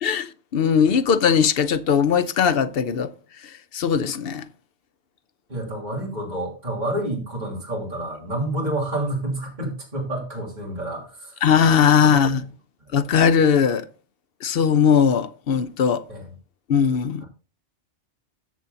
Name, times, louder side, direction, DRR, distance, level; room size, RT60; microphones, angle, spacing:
voice 1, 0.0-3.1 3.4-4.5 11.4-12.5 12.9-13.9 14.4-16.0 16.7-17.2, left 7 dB, 60° left, 0.8 m, -19 dB
voice 2, 5.5-11.4 12.1-12.4 12.9-13.0 16.1-16.3, right 1 dB, 40° right, 3.3 m, -29 dB
13.5 x 7.0 x 2.7 m
omnidirectional pair, 1.2 m